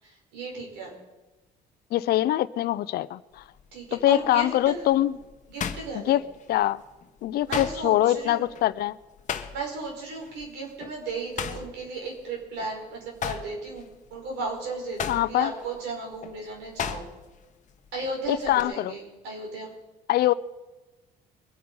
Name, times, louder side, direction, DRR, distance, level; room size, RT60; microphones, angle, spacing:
voice 1, 0.0-0.9 3.7-4.8 5.5-6.2 7.5-8.5 9.5-17.1 17.9-19.7, right 3 dB, 85° right, 5.2 m, -35 dB
voice 2, 1.9-3.4 3.9-5.1 5.9-6.2 6.5-6.8 7.2-9.0 15.1-15.5 18.3-18.9 20.1-20.3, left 14 dB, 65° left, 0.6 m, -23 dB
sound 1, 3.3-3.7 4.2-6.7 7.0-9.9 10.2-10.5 10.8-12.8 13.1-17.4 17.7-18.6, left 8 dB, 45° left, 1.1 m, -36 dB
22.5 x 8.7 x 5.5 m
cardioid pair, 110°, 17 cm